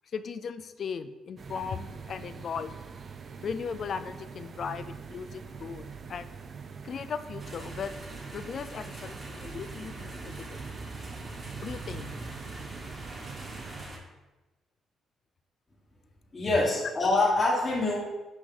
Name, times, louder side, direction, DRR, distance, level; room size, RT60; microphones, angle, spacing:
voice 1, 0.1-2.8 3.4-5.8 6.1-6.3 6.8-8.0 8.3-10.6 11.6-12.1, left 6 dB, 55° left, 12 dB, 0.4 m, -37 dB
sound 1, 1.4-13.8, right 5 dB, 50° right, 0.5 m, -44 dB
sound 2, 7.4-14.0, right 2 dB, 30° right, 1.5 m, -43 dB
voice 2, 16.3-18.0, left 2 dB, 30° left, -6 dB, 1.4 m, -25 dB
6.2 x 4.8 x 3.8 m, 1.1 s
cardioid pair, 90°, 0 cm